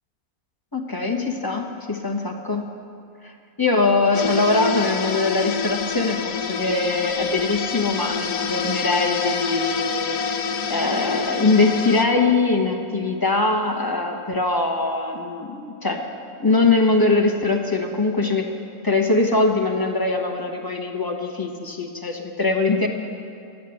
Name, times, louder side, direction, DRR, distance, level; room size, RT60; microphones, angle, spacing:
voice 1, 0.7-2.7 3.6-10.4 10.7-16.0 16.4-18.5 18.8-22.9, left 3 dB, 15° left, 2 dB, 1.0 m, -22 dB
sound 1, 4.1-12.0, left 6 dB, 80° left, 1.3 m, -27 dB
12.5 x 9.3 x 8.5 m, 2.6 s
omnidirectional pair, 1.5 m